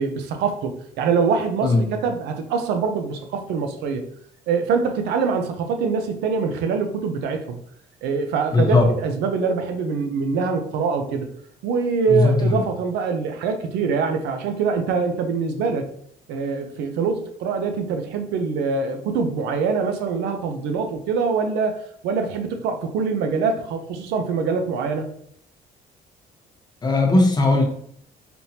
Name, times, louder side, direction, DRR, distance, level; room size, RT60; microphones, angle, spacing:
voice 1, 0.0-4.1 4.5-7.6 8.0-11.3 11.6-15.9 16.3-25.1, right 5 dB, 85° right, 5 dB, 0.6 m, -24 dB
voice 2, 1.6-2.0 8.5-8.9 12.1-12.6 26.8-27.6, left 2 dB, 25° left, 2 dB, 1.0 m, -18 dB
4.2 x 3.5 x 2.8 m, 0.65 s
cardioid pair, 110°, 17 cm